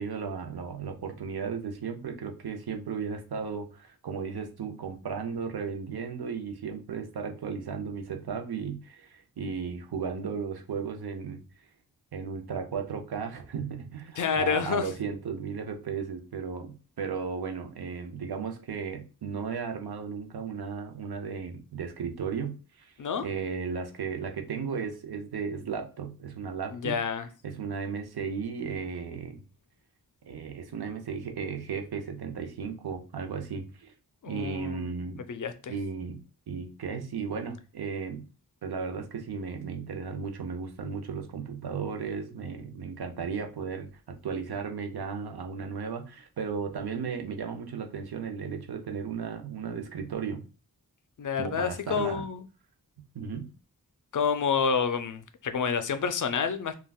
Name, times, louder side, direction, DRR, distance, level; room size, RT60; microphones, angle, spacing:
voice 1, 0.0-11.4 12.1-22.9 23.2-27.0 27.4-29.4 30.2-33.9 34.2-35.2 35.7-38.2 38.6-50.4 51.4-52.2 53.1-53.5, right 6 dB, 80° right, 0.6 m, -35 dB
voice 2, 14.2-14.9 23.0-23.3 26.7-27.3 34.2-34.9 35.3-35.7 51.2-52.5 54.1-56.8, left 6 dB, 55° left, 0.4 m, -28 dB
3.4 x 2.3 x 2.2 m
wide cardioid pair, 70°, 38 cm